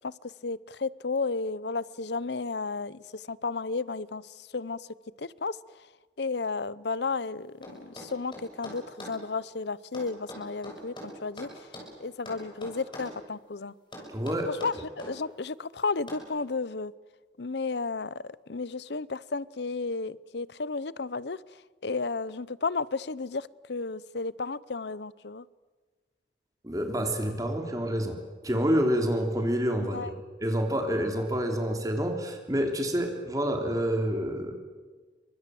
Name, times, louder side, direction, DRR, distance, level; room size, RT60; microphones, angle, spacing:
voice 1, 0.4-4.8 5.2-5.6 6.2-11.5 12.0-13.7 14.5-16.9 17.4-21.4 21.8-25.4 29.8-30.1, left 4 dB, 65° left, 20 dB, 0.7 m, -33 dB
sound 1, 7.6-9.2 9.9-11.9 12.3-13.2 13.9-15.2 16.1-16.3, equal, 25° left, 6.8 m, -43 dB
voice 2, 14.1-14.5 26.6-28.2 28.4-30.1 30.4-34.5, equal, 20° right, 4 dB, 3.2 m, -28 dB
30.0 x 24.5 x 7.7 m, 1.4 s
head